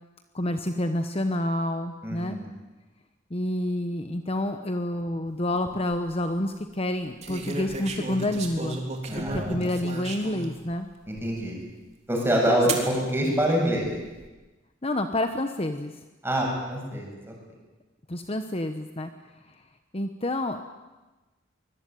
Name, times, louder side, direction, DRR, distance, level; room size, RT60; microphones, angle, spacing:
voice 1, 0.3-2.4 3.3-8.8 9.1-10.9 12.5-12.6 14.8-15.9 18.1-19.1 19.9-20.6, left 1 dB, 30° left, 7 dB, 1.1 m, -28 dB
voice 2, 2.0-2.4 9.1-9.7 11.1-11.6 12.1-13.9 16.2-17.3, right 1 dB, 10° right, -1 dB, 7.8 m, -26 dB
sound 1, 5.5-6.0 7.2-10.5 11.2-11.3 12.7-12.9 13.8-14.3, right 3 dB, 35° right, 3.5 m, -34 dB
24.5 x 21.0 x 9.3 m, 1.2 s
head